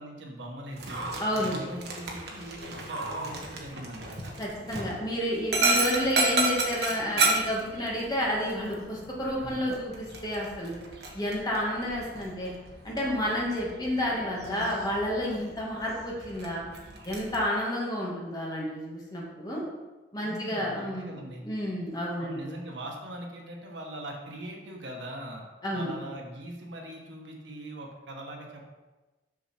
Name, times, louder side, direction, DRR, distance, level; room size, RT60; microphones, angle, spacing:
voice 1, 0.0-1.0 1.3-4.4 9.4-9.6 20.2-21.5 22.2-25.4 25.7-28.6, right 1 dB, 85° right, 0 dB, 1.4 m, -41 dB
Dog, 0.7-17.4, right 2 dB, 60° right, 1.4 m, -33 dB
voice 2, 1.2-1.6 4.4-10.8 11.1-12.5 12.8-16.7 17.0-19.6 20.1-21.1 21.4-22.5 25.6-25.9, left 1 dB, 20° left, -4 dB, 1.8 m, -30 dB
6.7 x 6.2 x 4.3 m, 1.2 s
head